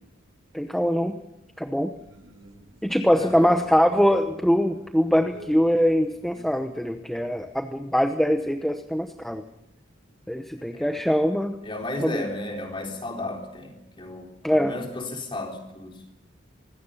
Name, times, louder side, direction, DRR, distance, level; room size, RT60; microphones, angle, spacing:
voice 1, 0.5-1.2 1.6-1.9 2.8-9.4 10.3-11.6 12.0-12.2 14.4-14.7, equal, ahead, 6 dB, 0.9 m, -23 dB
sound 1, 1.9-6.9, right 1 dB, 80° right, 6.4 m, -48 dB
voice 2, 3.2-3.5 10.7-10.9 11.6-16.0, left 2 dB, 25° left, 2 dB, 3.9 m, -34 dB
25.5 x 20.5 x 5.7 m, 0.84 s
head